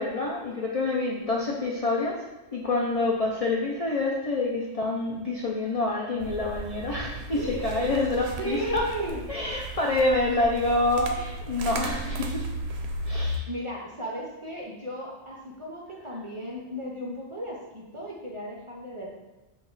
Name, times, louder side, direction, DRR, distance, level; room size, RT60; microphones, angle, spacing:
voice 1, 0.0-2.2 2.5-8.9 9.3-12.5 13.0-13.4, left 2 dB, 55° left, -2 dB, 0.4 m, -27 dB
sound 1, 6.2-13.4, right 1 dB, 70° right, 0.8 m, -35 dB
voice 2, 7.3-8.0 8.4-9.2 13.5-19.1, right 1 dB, 35° right, -3 dB, 0.5 m, -35 dB
5.9 x 2.4 x 3.9 m, 1.1 s
omnidirectional pair, 1.2 m